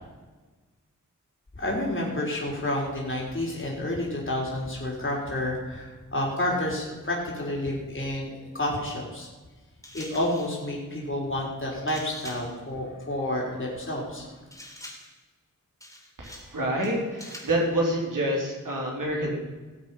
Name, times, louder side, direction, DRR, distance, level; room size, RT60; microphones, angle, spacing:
voice 1, 1.5-8.3 8.5-9.3 9.9-14.3, left 1 dB, 40° left, -3 dB, 4.2 m, -30 dB
sound 1, 9.8-10.6 11.9-12.6 14.5-15.2 15.8-16.6 16.8-17.6, left 1 dB, 10° left, 3.9 m, -45 dB
voice 2, 16.2-19.4, right 1 dB, 75° right, -2 dB, 3.9 m, -27 dB
19.0 x 7.5 x 5.7 m, 1.3 s
wide cardioid pair, 85°, 32 cm